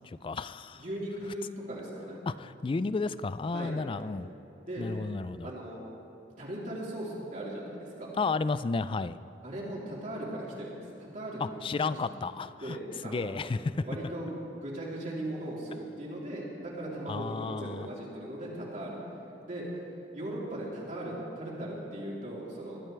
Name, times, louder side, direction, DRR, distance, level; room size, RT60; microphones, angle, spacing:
voice 1, 0.0-0.8 2.3-4.3 4.8-5.5 8.2-9.2 11.4-12.8 13.0-13.8 17.1-17.9, left 4 dB, 30° left, 14 dB, 0.3 m, -32 dB
voice 2, 0.7-2.2 3.5-3.7 4.7-4.8 5.4-5.8 6.4-8.1 9.4-11.6 11.9-12.0 12.6-13.3 13.8-19.0 19.4-19.6 20.1-22.8, right 1 dB, 45° right, -5 dB, 3.3 m, -38 dB
21.5 x 12.5 x 3.3 m, 2.9 s
head